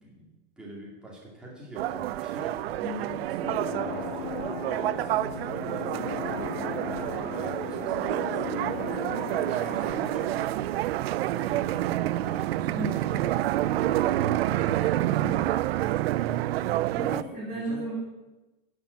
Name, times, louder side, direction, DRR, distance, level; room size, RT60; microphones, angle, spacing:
voice 1, 0.0-4.3 4.9-8.6 9.1-15.2 17.0-17.9, right 1 dB, 5° right, -5 dB, 2.3 m, -46 dB
sound 1, 1.8-17.2, right 14 dB, 90° right, 0.5 m, -28 dB
voice 2, 2.8-3.3 8.5-8.9 12.7-12.9 15.2-15.4 16.9-17.9, right 1 dB, 25° right, -9 dB, 3.2 m, -36 dB
sound 2, 3.4-10.8, left 9 dB, 65° left, 2.0 m, -37 dB
11.0 x 6.1 x 8.0 m, 1.1 s
supercardioid pair, 165°, 30 cm